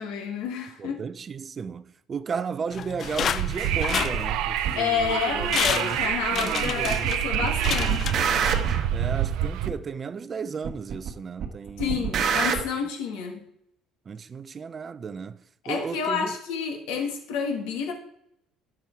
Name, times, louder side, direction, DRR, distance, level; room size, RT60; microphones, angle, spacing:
voice 1, 0.0-1.0 4.7-8.3 11.8-13.4 15.6-17.9, left 6 dB, 85° left, 2.0 m, -29 dB
voice 2, 0.8-7.1 8.9-12.2 14.1-16.4, right 6 dB, 35° right, 0.6 m, -35 dB
sound 1, 2.7-4.7 5.2-5.3 5.5-8.7 9.0-9.1, left 8 dB, 50° left, 0.4 m, -30 dB
Wind, 3.0-9.7, right 10 dB, 75° right, 0.7 m, -27 dB
sound 2, 4.6-4.8 5.6-5.7 6.6-7.1 7.4-8.9 9.6-9.7 10.6-11.1 11.4-12.6, right 7 dB, 60° right, 1.4 m, -27 dB
10.5 x 7.2 x 4.7 m
supercardioid pair, 85°, 0 cm